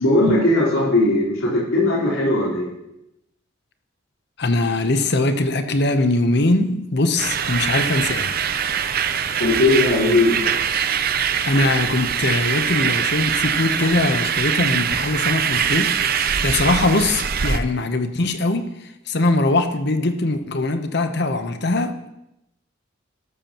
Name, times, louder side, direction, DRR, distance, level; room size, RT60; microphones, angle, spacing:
voice 1, 0.0-2.7 9.4-10.3, left 2 dB, 80° left, -5 dB, 3.8 m, -18 dB
voice 2, 4.4-8.4 11.4-18.7 19.1-22.1, left 2 dB, 55° left, 8 dB, 0.9 m, -21 dB
sound 1, 7.2-17.6, right 7 dB, 45° right, 0.6 m, -23 dB
12.5 x 12.5 x 3.0 m, 0.86 s
head